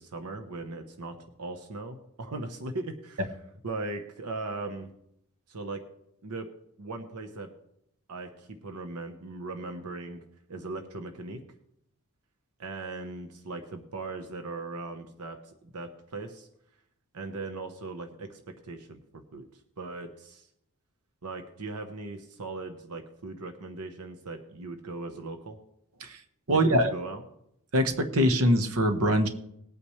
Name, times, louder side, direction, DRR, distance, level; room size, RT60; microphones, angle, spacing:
voice 1, 0.0-3.2 3.6-4.9 5.5-5.8 6.2-6.5 6.8-7.5 8.1-10.2 10.5-11.4 12.6-16.5 17.1-20.5 21.2-25.6 26.7-27.2, right 3 dB, 85° right, 5 dB, 1.1 m, -39 dB
voice 2, 26.5-26.9 27.7-29.3, equal, 70° right, 7 dB, 1.2 m, -23 dB
20.0 x 8.6 x 3.2 m, 0.77 s
head